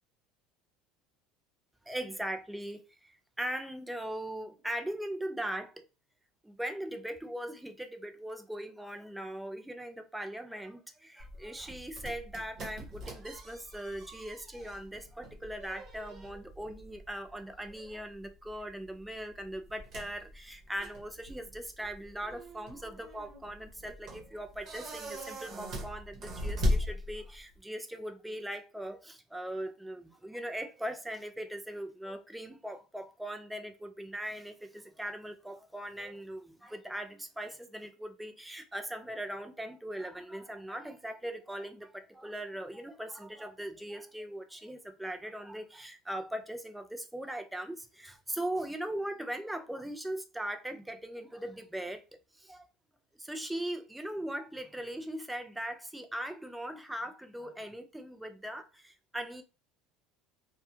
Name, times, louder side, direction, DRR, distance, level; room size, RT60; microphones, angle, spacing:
voice 1, 1.9-5.8 6.4-52.0 52.4-52.7 53.2-59.4, right 1 dB, 5° right, 0.3 m, -40 dB
sound 1, 11.2-27.6, left 1 dB, 40° right, 0.9 m, -39 dB
2.2 x 2.2 x 2.9 m
cardioid pair, 140°, 0 cm